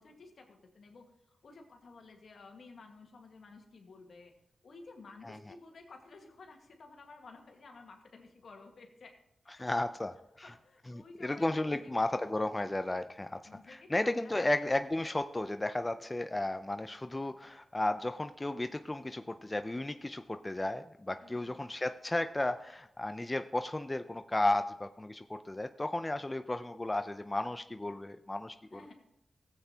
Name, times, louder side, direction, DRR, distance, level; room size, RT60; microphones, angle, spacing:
voice 1, 0.0-4.3 4.6-9.1 9.4-9.6 10.4-12.0 13.4-14.5 21.1-21.7 28.7-28.9, left 3 dB, 70° left, 3 dB, 1.6 m, -54 dB
voice 2, 9.6-10.5 10.9-13.4 13.7-28.8, left 2 dB, 25° left, 9 dB, 0.4 m, -34 dB
14.5 x 8.1 x 2.8 m, 0.86 s
cardioid pair, 50°, 0 cm